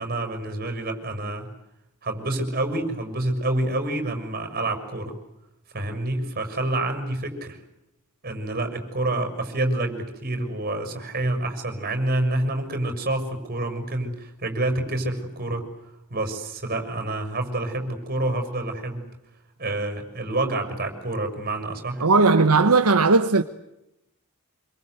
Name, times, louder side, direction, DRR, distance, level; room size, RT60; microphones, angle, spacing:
voice 1, 0.0-1.5 2.0-5.2 5.7-7.6 8.2-15.7 16.1-19.1 19.6-22.1, right 2 dB, 45° right, 6.5 m, -28 dB
voice 2, 22.0-23.4, right 3 dB, 80° right, 1.2 m, -17 dB
27.0 x 24.5 x 8.1 m
head